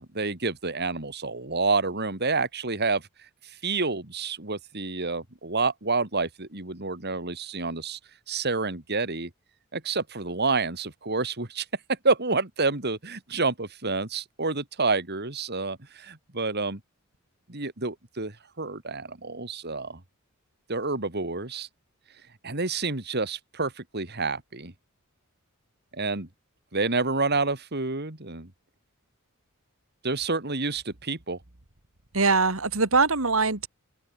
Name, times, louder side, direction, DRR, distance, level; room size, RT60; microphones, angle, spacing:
voice 1, 0.0-3.0 3.6-8.0 8.3-9.3 9.7-11.6 12.0-16.8 17.5-20.0 20.7-21.7 22.4-24.7 25.9-26.3 26.7-28.5 30.0-31.4, right 3 dB, 50° right, 2.9 m, -28 dB
voice 2, 32.1-33.7, right 4 dB, 65° right, 2.3 m, -22 dB
open air
head